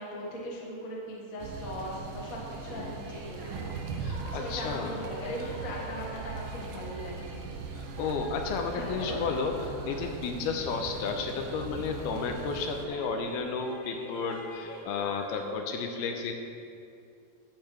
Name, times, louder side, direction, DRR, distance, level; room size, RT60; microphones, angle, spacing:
voice 1, 0.0-3.7 4.3-7.3 8.7-9.2, equal, 55° left, -4 dB, 0.9 m, -39 dB
sound 1, 1.4-12.9, right 4 dB, 80° right, 2.0 m, -40 dB
sound 2, 2.6-15.5, right 1 dB, 40° right, 1.4 m, -46 dB
voice 2, 4.0-5.0 7.7-9.5 9.9-16.3, left 5 dB, 85° left, 4 dB, 2.6 m, -32 dB
14.5 x 8.5 x 3.3 m, 2.5 s
omnidirectional pair, 4.7 m